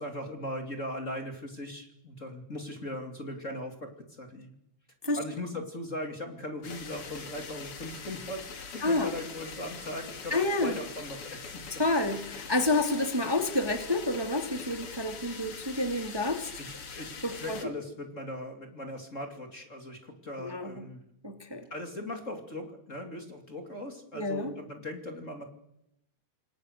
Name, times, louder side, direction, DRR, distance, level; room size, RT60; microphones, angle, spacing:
voice 1, 0.0-4.5 5.2-11.6 16.6-21.0 21.7-25.4, left 1 dB, 25° left, 4 dB, 2.7 m, -39 dB
sound 1, 6.6-17.6, left 5 dB, 50° left, 3.0 m, -43 dB
voice 2, 8.8-9.1 10.3-10.8 11.8-16.5 17.2-17.6 20.4-20.8 21.2-21.7 24.1-24.5, left 2 dB, 10° right, 6 dB, 1.9 m, -29 dB
28.0 x 22.5 x 6.6 m, 0.82 s
omnidirectional pair, 3.4 m